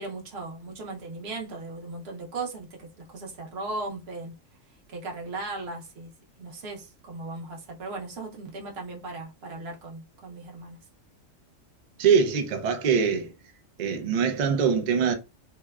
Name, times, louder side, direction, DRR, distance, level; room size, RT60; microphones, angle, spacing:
voice 1, 0.0-4.3 4.9-6.1 6.4-10.8, right 3 dB, 55° right, 0.9 m, -37 dB
voice 2, 12.0-13.3 13.8-15.1, right 6 dB, 85° right, 0.3 m, -23 dB
2.7 x 2.1 x 2.3 m
omnidirectional pair, 1.4 m